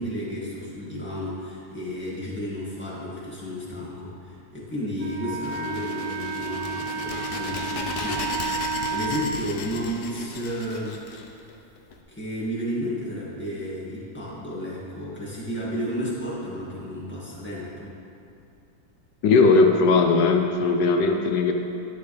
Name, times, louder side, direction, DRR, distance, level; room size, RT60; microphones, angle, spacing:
voice 1, 0.0-11.0 12.1-17.9, equal, 5° left, -7 dB, 1.9 m, -32 dB
Wind instrument woodwind instrument, 5.0-9.3, right 5 dB, 60° right, 0.9 m, -31 dB
sound 1, 5.4-11.9, left 4 dB, 65° left, 1.3 m, -36 dB
voice 2, 19.2-21.5, left 4 dB, 85° left, 4 dB, 1.4 m, -18 dB
10.5 x 10.0 x 3.3 m, 2.6 s
omnidirectional pair, 1.9 m